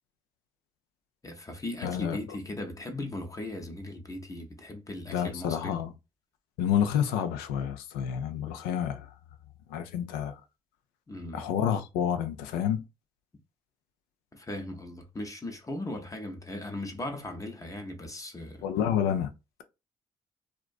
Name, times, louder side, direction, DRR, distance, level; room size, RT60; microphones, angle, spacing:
voice 1, 1.2-5.8 11.1-11.4 14.3-18.7, left 1 dB, 20° left, 0.6 m, -38 dB
voice 2, 1.8-2.2 5.1-5.9 6.6-9.1 9.7-10.4 11.3-12.8 18.6-19.3, left 9 dB, 80° left, 0.4 m, -29 dB
2.4 x 2.1 x 2.4 m
hypercardioid pair, 45°, 15 cm